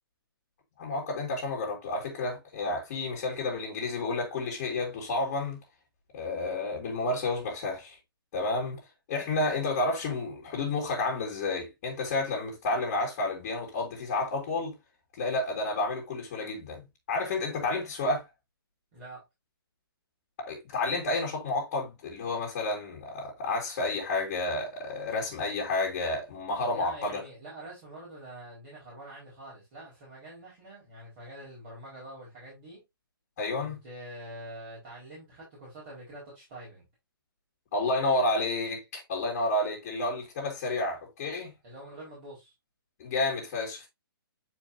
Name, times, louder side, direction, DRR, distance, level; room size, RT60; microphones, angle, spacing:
voice 1, 0.8-5.6 6.1-8.0 8.3-8.8 9.1-14.8 15.1-16.8 17.1-18.2 20.4-27.2 33.4-33.8 37.7-41.5 43.0-43.9, left 2 dB, 25° left, 2.3 m, -30 dB
voice 2, 18.9-19.2 26.7-32.8 33.6-36.9 41.6-42.5, right 1 dB, 25° right, 4.9 m, -45 dB
9.6 x 4.7 x 2.8 m
hypercardioid pair, 170°, 12 cm